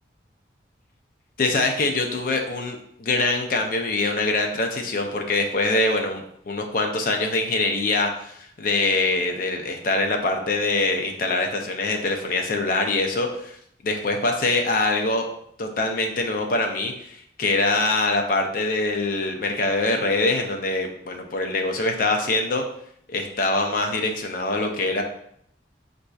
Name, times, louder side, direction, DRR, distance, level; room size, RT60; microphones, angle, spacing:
voice 1, 1.4-13.6 13.8-15.3 15.6-22.6 23.1-25.0, left 2 dB, 50° left, 4 dB, 0.4 m, -24 dB
4.2 x 2.6 x 2.3 m, 0.69 s
head